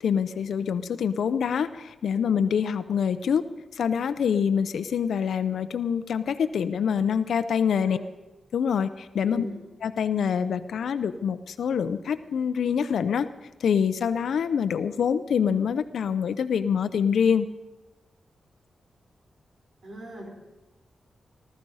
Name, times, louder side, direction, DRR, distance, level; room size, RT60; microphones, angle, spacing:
voice 1, 0.0-3.5 3.7-8.0 8.5-9.5 9.8-13.3 13.6-17.5, left 7 dB, 85° left, 11 dB, 0.6 m, -25 dB
voice 2, 7.6-8.0 9.3-9.6 19.8-20.3, equal, 55° right, 0 dB, 5.1 m, -39 dB
19.5 x 13.0 x 5.5 m, 1.1 s
wide cardioid pair, 125°, 0 cm